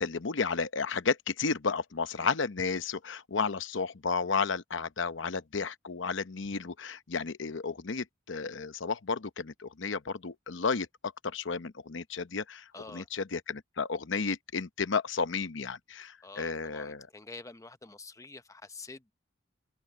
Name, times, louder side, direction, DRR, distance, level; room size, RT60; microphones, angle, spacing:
voice 1, 0.0-17.1, left 5 dB, 70° left, 0.8 m, -32 dB
voice 2, 12.7-13.1 16.2-19.1, left 3 dB, 15° left, 0.8 m, -47 dB
head